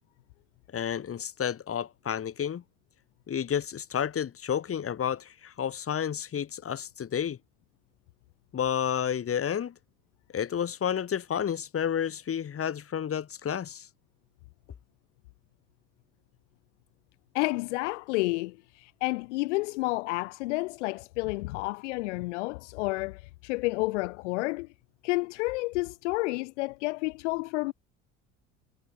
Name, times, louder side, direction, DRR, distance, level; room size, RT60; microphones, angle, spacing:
voice 1, 0.7-2.6 3.3-7.4 8.5-9.7 10.3-13.9, left 8 dB, 35° left, 4.7 m, -31 dB
voice 2, 17.3-24.7 25.0-27.7, left 23 dB, 65° left, 1.7 m, -30 dB
figure-of-eight pair, 60°, 39 cm